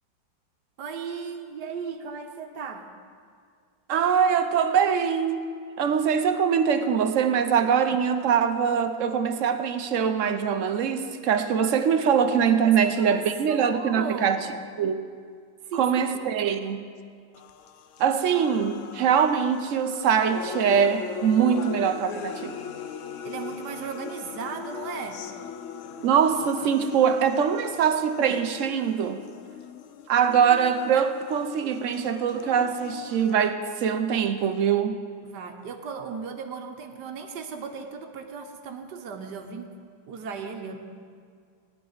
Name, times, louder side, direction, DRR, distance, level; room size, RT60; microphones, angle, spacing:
voice 1, 0.8-2.9 12.6-12.7 13.0-13.2 13.5-14.6 15.6-16.1 23.2-25.3 35.2-39.7 40.1-40.8, right 5 dB, 80° right, 1.5 m, -36 dB
voice 2, 3.9-5.4 5.8-14.4 14.8-15.0 15.7-16.9 18.0-22.6 26.0-29.2 30.1-35.0, right 7 dB, 65° right, 0.8 m, -23 dB
sound 1, 17.3-33.3, left 7 dB, 65° left, 0.8 m, -40 dB
18.0 x 10.5 x 4.0 m
omnidirectional pair, 1.8 m